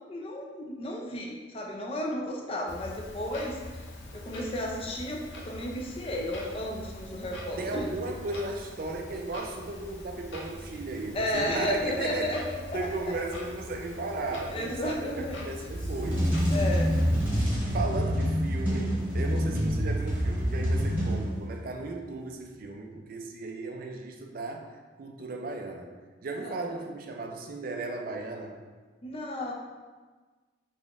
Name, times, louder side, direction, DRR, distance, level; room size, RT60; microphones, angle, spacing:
voice 1, 0.1-3.6 4.1-7.8 11.1-13.1 14.5-15.5 16.5-16.9 17.7-17.8 19.5-19.6 26.3-26.6 29.0-29.5, left 1 dB, 30° left, 0 dB, 0.4 m, -33 dB
Clock, 2.7-17.3, left 1 dB, 75° left, 0.6 m, -43 dB
voice 2, 7.6-12.3 12.7-16.4 17.7-28.6, right 2 dB, 50° right, 3 dB, 0.4 m, -36 dB
sound 1, 15.7-21.6, equal, 10° right, 1.1 m, -27 dB
3.9 x 2.9 x 2.4 m, 1.4 s
head